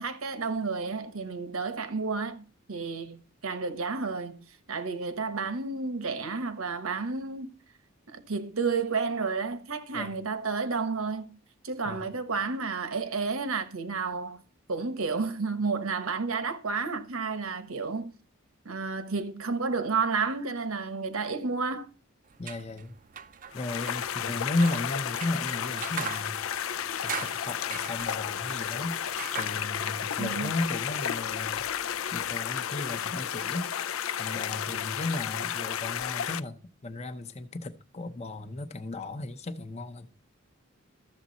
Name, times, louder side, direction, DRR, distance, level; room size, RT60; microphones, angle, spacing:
voice 1, 0.0-7.5 8.1-11.4 11.6-14.4 14.7-18.1 18.6-21.9 30.2-30.5, right 4 dB, 85° right, 1.2 m, -31 dB
sound 1, 22.3-32.3, right 8 dB, 40° right, 0.5 m, -43 dB
voice 2, 22.4-22.9 23.5-26.4 27.0-31.6 32.1-40.1, left 2 dB, 30° left, 0.8 m, -35 dB
sound 2, 23.5-36.4, left 9 dB, 80° left, 0.5 m, -32 dB
13.0 x 7.3 x 4.1 m
head